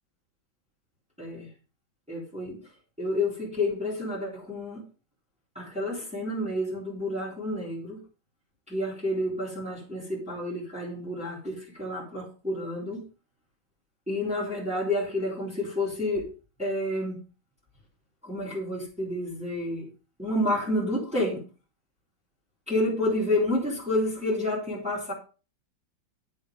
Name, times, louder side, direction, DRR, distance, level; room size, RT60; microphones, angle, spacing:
voice 1, 1.2-1.5 2.1-2.6 3.0-4.8 5.5-8.0 8.7-13.0 14.1-16.3 16.6-17.2 18.2-19.9 20.2-21.4 22.7-25.1, left 1 dB, 5° right, -5 dB, 4.0 m, -29 dB
9.0 x 7.7 x 5.2 m, 0.34 s
omnidirectional pair, 2.1 m